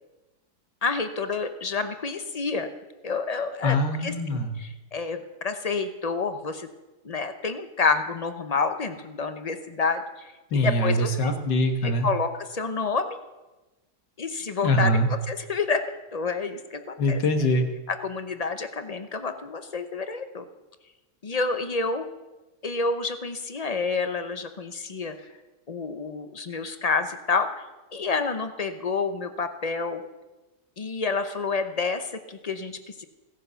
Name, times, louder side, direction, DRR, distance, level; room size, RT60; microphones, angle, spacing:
voice 1, 0.8-2.7 3.0-4.1 4.6-6.7 7.0-11.3 11.8-13.2 14.2-15.8 16.1-17.2 17.9-20.4 21.2-22.1 22.6-25.2 25.7-27.6 27.9-30.0 30.8-33.0, left 4 dB, 45° left, 9 dB, 0.5 m, -29 dB
voice 2, 3.6-4.5 10.5-12.1 14.6-15.1 17.0-17.7, left 1 dB, 80° left, 5 dB, 2.1 m, -23 dB
16.5 x 10.0 x 6.9 m, 1.1 s
omnidirectional pair, 1.8 m